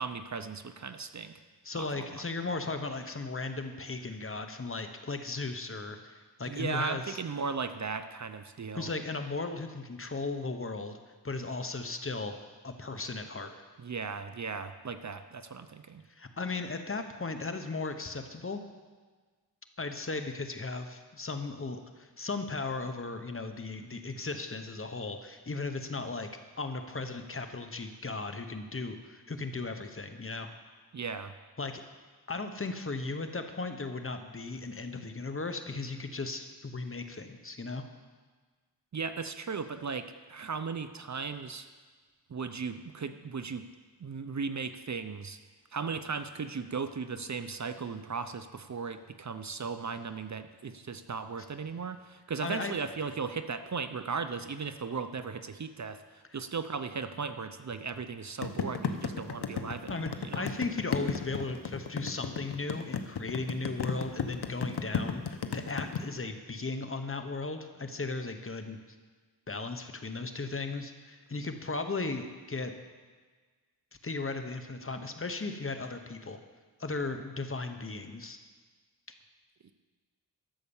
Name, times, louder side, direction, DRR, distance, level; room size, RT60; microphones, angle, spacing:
voice 1, 0.0-1.3 1.7-2.2 6.4-8.9 13.8-16.0 30.9-31.3 38.9-41.7 42.3-43.7 44.0-45.4 45.7-60.5, right 5 dB, 45° right, 10 dB, 0.6 m, -37 dB
voice 2, 1.6-7.2 8.7-11.0 11.2-12.3 12.6-13.5 16.1-18.6 19.8-26.3 26.6-30.5 31.6-31.8 32.3-37.8 52.4-52.7 59.9-60.1 60.4-68.8 69.5-72.7 74.0-76.4 76.8-78.4, left 3 dB, 35° left, 7 dB, 0.9 m, -36 dB
sound 1, 58.4-66.0, left 7 dB, 75° left, 0.9 m, -33 dB
12.5 x 6.5 x 7.1 m, 1.4 s
wide cardioid pair, 80°, 40 cm